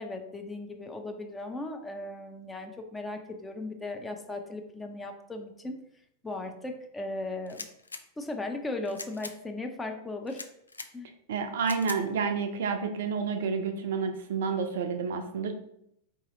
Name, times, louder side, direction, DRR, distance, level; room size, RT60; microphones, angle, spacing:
voice 1, 0.0-5.7 6.2-7.7 8.2-10.4 10.9-11.1, left 2 dB, 10° left, 4 dB, 0.6 m, -37 dB
sound 1, 7.5-8.0 8.9-9.4 10.3-10.9 11.6-12.0, left 3 dB, 80° left, 0.3 m, -41 dB
voice 2, 11.3-15.5, right 5 dB, 60° right, 6 dB, 0.5 m, -30 dB
3.9 x 2.8 x 3.7 m, 0.75 s
figure-of-eight pair, 90°, 0 cm